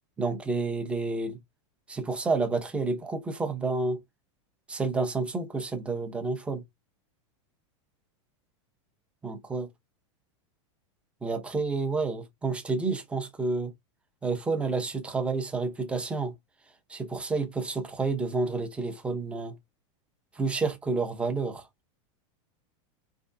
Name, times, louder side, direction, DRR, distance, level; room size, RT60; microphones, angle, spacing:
voice 1, 0.2-1.4 1.9-4.0 4.7-6.6 9.2-9.7 11.2-13.7 14.2-16.3 16.9-19.5 20.4-21.7, right 3 dB, 5° right, 0.8 m, -29 dB
4.5 x 3.5 x 2.6 m
supercardioid pair, 165°, 16 cm